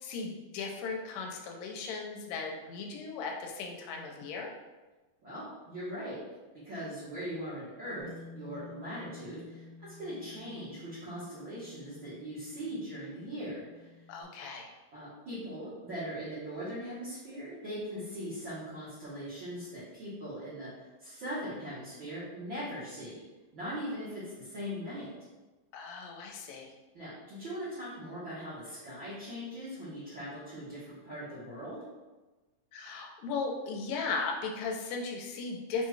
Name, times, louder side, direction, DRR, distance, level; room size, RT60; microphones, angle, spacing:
voice 1, 0.0-4.5 14.1-14.7 25.7-26.7 32.7-35.9, left 4 dB, 80° left, 1 dB, 2.2 m, -37 dB
voice 2, 5.2-6.2 6.6-13.9 14.9-23.2 23.5-25.1 26.9-31.8, equal, 75° right, -13 dB, 1.1 m, -40 dB
Bass guitar, 8.0-14.2, left 2 dB, 55° left, 1.8 m, -52 dB
6.1 x 2.3 x 3.1 m, 1.2 s
omnidirectional pair, 4.1 m